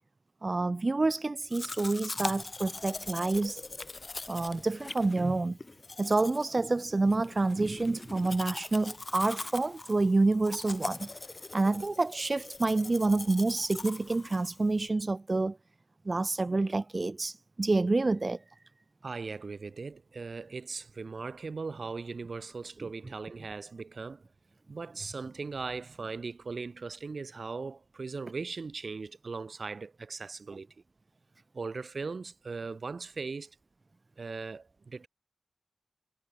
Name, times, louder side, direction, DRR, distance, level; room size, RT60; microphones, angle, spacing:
voice 1, 0.4-3.6 4.3-5.6 6.0-11.1 11.5-15.6 16.0-18.4, right 3 dB, 35° right, 1.6 m, -28 dB
Domestic sounds home sounds, 1.5-14.9, left 3 dB, 35° left, 3.3 m, -41 dB
voice 2, 19.0-24.2 24.7-30.7 31.5-33.5 34.2-35.1, right 4 dB, 55° right, 3.0 m, -39 dB
wide cardioid pair, 90°, 0 cm